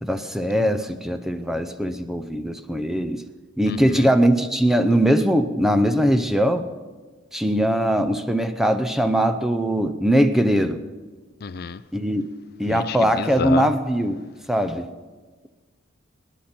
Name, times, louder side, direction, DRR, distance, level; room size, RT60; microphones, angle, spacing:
voice 1, 0.0-3.2 3.6-6.7 7.3-10.8 11.9-12.3 12.6-14.9, equal, ahead, 0.6 m, -21 dB
voice 2, 11.4-11.8 12.7-13.7, left 5 dB, 50° left, 0.4 m, -29 dB
26.5 x 10.0 x 4.4 m
head